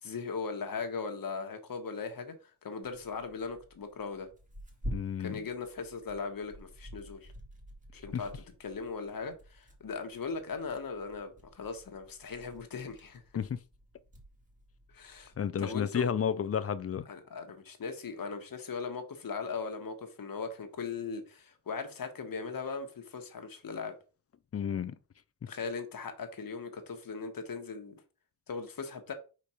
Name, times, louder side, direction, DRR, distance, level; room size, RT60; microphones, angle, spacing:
voice 1, 0.0-2.3 2.6-4.3 5.2-7.3 7.9-13.2 14.9-15.3 15.6-16.1 17.1-24.0 25.5-28.0 28.5-29.1, left 5 dB, 55° left, 1.2 m, -39 dB
Tearing, 2.8-15.4, equal, 20° right, 1.7 m, -48 dB
voice 2, 4.9-5.4 8.1-8.2 13.3-13.6 15.4-17.1 24.5-24.9 25.4-25.5, left 8 dB, 40° left, 0.4 m, -31 dB
5.0 x 4.3 x 4.9 m
wide cardioid pair, 145°, 41 cm